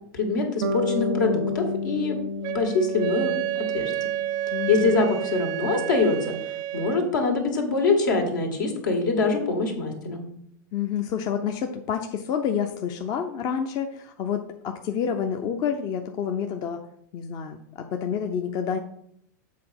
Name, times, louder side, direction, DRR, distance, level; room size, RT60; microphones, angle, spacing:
voice 1, 0.1-2.2 2.5-3.9 4.7-6.4 6.7-10.2, left 3 dB, 75° left, 2 dB, 2.1 m, -24 dB
Bass guitar, 0.6-4.7, left 3 dB, 80° right, 0.7 m, -31 dB
Wind instrument woodwind instrument, 2.4-7.1, right 13 dB, 40° right, 0.4 m, -30 dB
voice 2, 4.5-5.0 10.7-16.8 17.1-18.8, left 7 dB, 40° left, 5 dB, 0.7 m, -29 dB
7.5 x 4.0 x 5.9 m, 0.71 s
hypercardioid pair, 105°, 10 cm